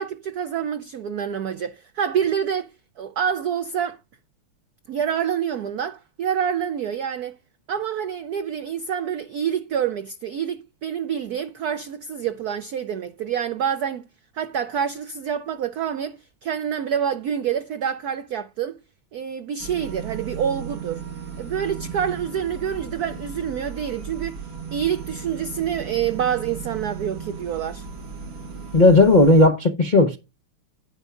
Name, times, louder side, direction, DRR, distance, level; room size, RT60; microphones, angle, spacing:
voice 1, 0.0-2.7 3.0-4.0 4.9-7.3 7.7-14.0 14.3-18.8 19.1-21.0 21.4-24.4 24.7-27.9, right 8 dB, 85° right, 0.8 m, -27 dB
sound 1, 19.6-29.5, right 6 dB, 45° right, 1.6 m, -36 dB
voice 2, 28.7-30.2, left 2 dB, 50° left, 0.5 m, -14 dB
10.5 x 10.0 x 2.4 m
omnidirectional pair, 2.4 m